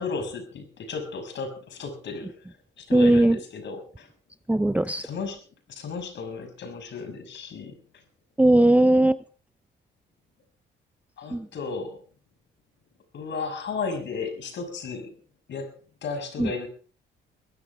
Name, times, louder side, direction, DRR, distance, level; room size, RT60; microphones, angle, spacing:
voice 1, 0.0-2.3 2.8-4.1 5.0-5.4 5.7-7.8 11.2-12.0 13.1-15.1 15.5-15.7 16.0-16.7, left 4 dB, 65° left, 7 dB, 6.2 m, -34 dB
voice 2, 2.9-3.4 4.5-5.1 8.4-9.2 11.3-11.5 16.4-16.5, right 1 dB, 5° right, 14 dB, 0.6 m, -18 dB
22.0 x 15.5 x 3.5 m, 0.40 s
cardioid pair, 90°, 20 cm